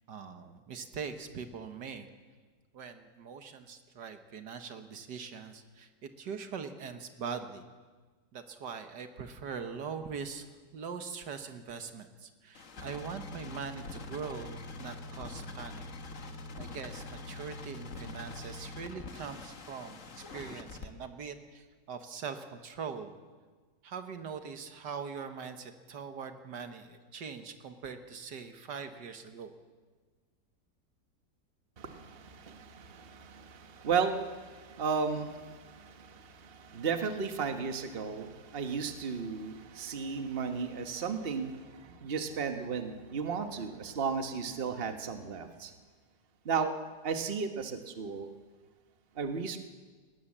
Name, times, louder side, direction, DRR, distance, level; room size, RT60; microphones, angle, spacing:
voice 1, 0.1-2.1 2.7-7.6 8.3-10.5 10.7-15.9 16.6-23.1 23.8-29.5, right 6 dB, 80° right, 8 dB, 1.9 m, -42 dB
sound 1, 12.5-20.9, left 3 dB, 50° left, 1.7 m, -44 dB
voice 2, 31.8-45.7 46.4-46.7 47.0-48.3 49.1-49.6, right 5 dB, 35° right, 7 dB, 1.4 m, -34 dB
19.5 x 19.0 x 7.4 m, 1.5 s
omnidirectional pair, 1.8 m